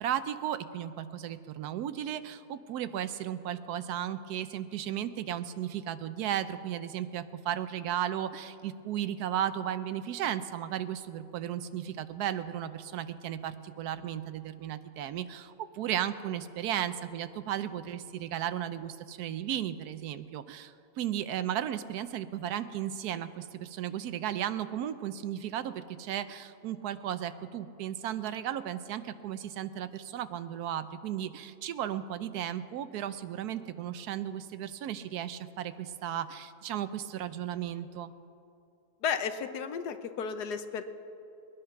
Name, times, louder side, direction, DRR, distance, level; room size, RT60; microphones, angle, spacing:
voice 1, 0.0-38.1, right 10 dB, 75° right, 12 dB, 1.1 m, -35 dB
voice 2, 39.0-40.8, left 6 dB, 80° left, 9 dB, 1.4 m, -33 dB
21.0 x 10.0 x 5.8 m, 2.7 s
omnidirectional pair, 1.7 m